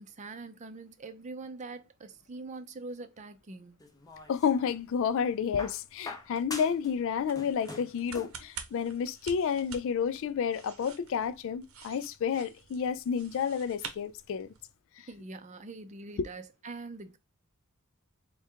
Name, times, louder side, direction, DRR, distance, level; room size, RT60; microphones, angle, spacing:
voice 1, 0.0-3.8 15.0-17.2, right 3 dB, 35° right, 0.5 m, -43 dB
sound 1, 3.8-4.8 5.6-6.9 7.2-8.5 9.5-9.6, left 3 dB, 15° left, 0.6 m, -43 dB
sound 2, 4.0-14.8, right 6 dB, 75° right, 0.8 m, -50 dB
voice 2, 4.3-14.5 15.0-15.1, left 7 dB, 65° left, 0.3 m, -30 dB
3.5 x 2.3 x 4.4 m
head